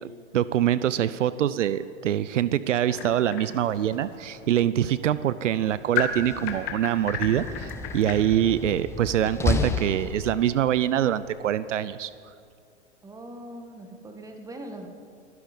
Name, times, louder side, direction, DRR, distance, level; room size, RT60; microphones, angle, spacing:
voice 1, 0.0-12.1, right 11 dB, 80° right, 16 dB, 0.6 m, -24 dB
sound 1, 2.9-8.1, left 7 dB, 45° left, 2.0 m, -35 dB
Slam, 6.1-10.7, left 4 dB, 5° left, 0.7 m, -32 dB
voice 2, 13.0-14.9, right 1 dB, 10° right, 5 dB, 1.6 m, -41 dB
23.0 x 11.0 x 5.3 m, 2.4 s
hypercardioid pair, 120°, 37 cm